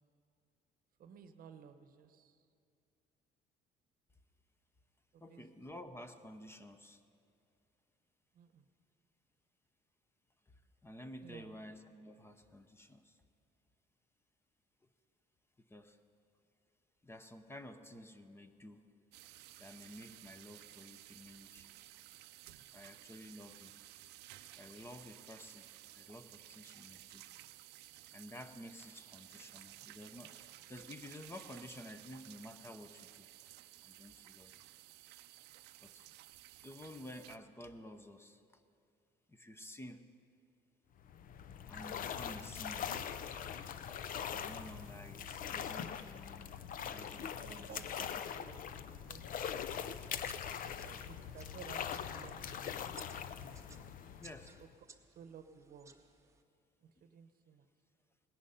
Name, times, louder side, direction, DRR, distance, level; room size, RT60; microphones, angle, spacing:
voice 1, 1.0-2.4 5.1-5.5 8.3-8.6 11.2-11.6 47.3-49.3 50.5-52.9 54.6-54.7 55.1-55.9 56.8-57.7, right 7 dB, 55° right, 10 dB, 0.9 m, -55 dB
voice 2, 5.2-7.0 10.5-13.2 15.6-16.0 17.0-18.9 19.6-21.7 22.7-23.7 24.6-25.7 25.9-27.2 28.1-33.3 33.8-34.5 35.8-36.1 36.6-38.4 39.3-40.1 41.7-42.9 44.3-46.5 46.8-47.8 54.2-54.6 57.0-57.1, left 1 dB, 15° left, 9 dB, 0.7 m, -52 dB
sound 1, 19.1-37.4, right 15 dB, 85° right, 0.5 m, -56 dB
sound 2, 41.0-54.7, left 8 dB, 55° left, 0.6 m, -42 dB
sound 3, 49.5-56.4, right 4 dB, 15° right, 0.8 m, -61 dB
18.5 x 10.5 x 5.6 m, 2.4 s
cardioid pair, 110°, 17 cm